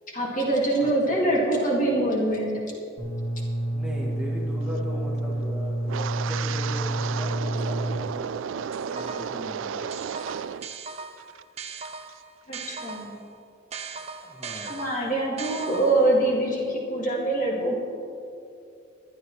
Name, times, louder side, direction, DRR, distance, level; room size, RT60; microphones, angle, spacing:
voice 1, 0.1-2.5 12.5-13.1 14.6-17.8, right 1 dB, 40° left, -3 dB, 2.1 m, -24 dB
voice 2, 0.8-1.2 3.7-8.3 8.9-9.8 14.2-14.9, equal, 5° right, -5 dB, 1.9 m, -38 dB
sound 1, 3.0-8.0, right 1 dB, 25° left, 2.2 m, -29 dB
Wind, 5.9-10.7 11.0-11.4 11.8-12.1, right 7 dB, 75° right, 0.3 m, -33 dB
sound 2, 8.7-9.4 9.9-13.2 13.7-16.2, right 5 dB, 30° right, 0.6 m, -39 dB
20.0 x 11.5 x 3.2 m, 2.6 s
head